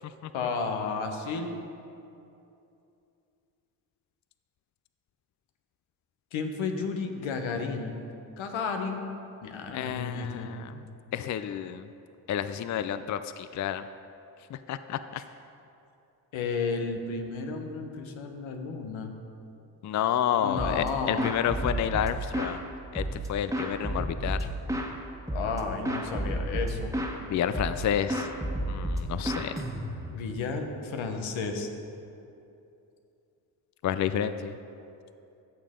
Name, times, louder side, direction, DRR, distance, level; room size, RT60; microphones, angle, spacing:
voice 1, 0.3-1.5 6.3-7.9 8.4-9.1 9.4-10.5 16.3-19.1 20.4-21.3 25.3-26.9 30.1-31.7, left 4 dB, 80° left, 4 dB, 1.1 m, -32 dB
voice 2, 9.7-10.8 11.1-11.9 12.3-13.8 14.5-15.2 19.8-22.6 22.9-24.4 27.3-28.3 28.7-29.6 33.8-34.6, left 9 dB, 40° left, 12 dB, 0.4 m, -30 dB
sound 1, 20.6-20.9 21.2-22.6 22.9-24.9 25.3-25.6 25.8-27.2 27.5-27.8 28.1-30.2, equal, 5° right, 1.4 m, -31 dB
14.0 x 6.7 x 3.7 m, 2.7 s
supercardioid pair, 45°, 47 cm